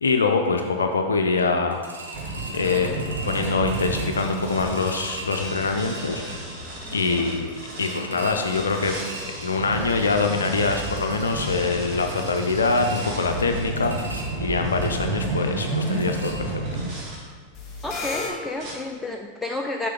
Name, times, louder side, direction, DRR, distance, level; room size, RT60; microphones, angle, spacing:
voice 1, 0.0-1.8 2.5-2.9 3.2-6.2 6.9-7.5 7.8-9.0 9.2-14.0 14.4-16.5, left 4 dB, 70° left, 4 dB, 0.4 m, -24 dB
sound 1, 1.7-16.9 17.2-17.3 17.7-17.8, right 2 dB, 75° right, 0.9 m, -40 dB
sound 2, 2.1-8.0 8.4-17.2 17.8-18.2 18.6-18.7, right 2 dB, 35° right, 1.9 m, -32 dB
sound 3, 2.5-3.7 4.3-5.4 5.9-7.6 7.9-10.4 10.7-10.8 11.2-14.0 17.5-18.3, left 3 dB, 30° left, 1.5 m, -39 dB
voice 2, 17.8-19.9, left 2 dB, 10° left, 2 dB, 0.4 m, -30 dB
6.4 x 5.8 x 3.5 m, 1.5 s
figure-of-eight pair, 90°, 0 cm